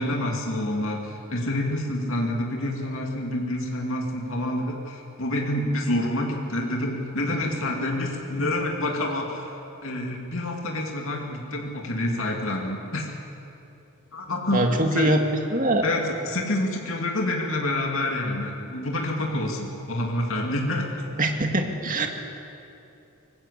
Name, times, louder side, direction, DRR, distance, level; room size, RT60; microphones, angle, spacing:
voice 1, 0.0-9.6 9.8-13.1 14.1-15.2 15.8-20.9 22.0-22.1, left 1 dB, 60° left, 0 dB, 2.7 m, -27 dB
voice 2, 14.5-15.2 15.5-15.8 21.2-22.1, right 1 dB, 40° right, 4 dB, 2.2 m, -23 dB
24.0 x 20.0 x 8.3 m, 2.8 s
head